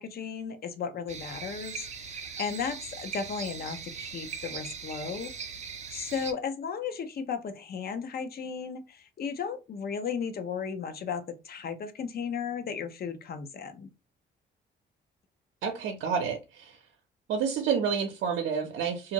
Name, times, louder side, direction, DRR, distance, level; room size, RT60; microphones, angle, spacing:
voice 1, 0.0-5.3 5.9-13.9, left 6 dB, 50° left, 0.6 m, -35 dB
sound 1, 1.1-6.3, right 6 dB, 35° right, 0.5 m, -40 dB
voice 2, 15.6-16.8 17.3-19.1, right 6 dB, 80° right, 0.6 m, -29 dB
2.5 x 2.5 x 2.9 m
cardioid pair, 90°, 20 cm